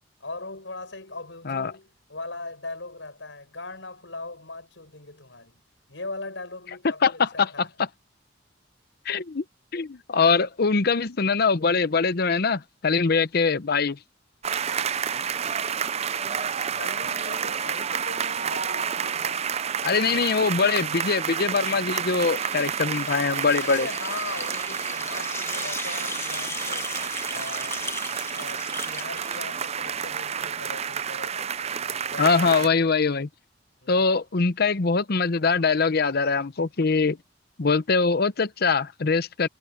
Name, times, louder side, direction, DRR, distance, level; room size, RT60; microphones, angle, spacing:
voice 1, 0.2-5.6 5.9-7.7 16.3-19.5 20.1-20.3 23.6-27.0 27.3-27.9 28.2-32.9 33.8-34.2, left 3 dB, 80° left, 7.3 m, -40 dB
voice 2, 7.0-7.5 9.1-9.4 9.7-14.0 19.8-23.9 32.2-33.3 33.9-37.2 37.6-39.5, left 4 dB, 55° left, 0.8 m, -23 dB
sound 1, 14.4-32.7, right 7 dB, 35° right, 0.5 m, -30 dB
sound 2, 21.8-30.2, left 3 dB, 15° left, 1.5 m, -37 dB
head